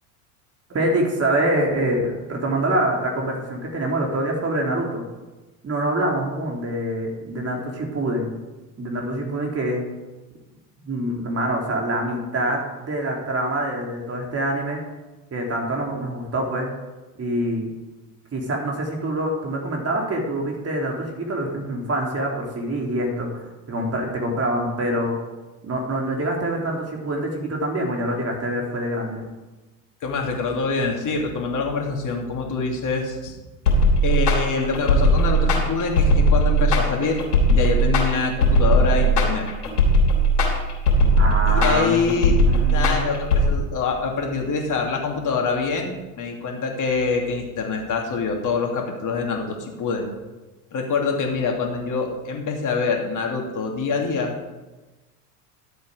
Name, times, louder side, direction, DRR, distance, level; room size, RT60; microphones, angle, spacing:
voice 1, 0.7-5.0 5.6-8.3 8.8-9.8 10.8-14.8 15.3-16.8 17.2-17.7 18.3-25.2 25.6-29.2 41.2-43.2, right 1 dB, 30° right, 0 dB, 3.5 m, -25 dB
voice 2, 30.0-33.3 34.0-37.2 37.5-39.5 41.5-50.1 50.7-54.3, left 4 dB, 40° left, 1 dB, 3.0 m, -25 dB
sound 1, 33.7-43.5, equal, 85° left, 3.5 m, -18 dB
12.5 x 8.2 x 5.1 m, 1.2 s
hypercardioid pair, 80°, 46 cm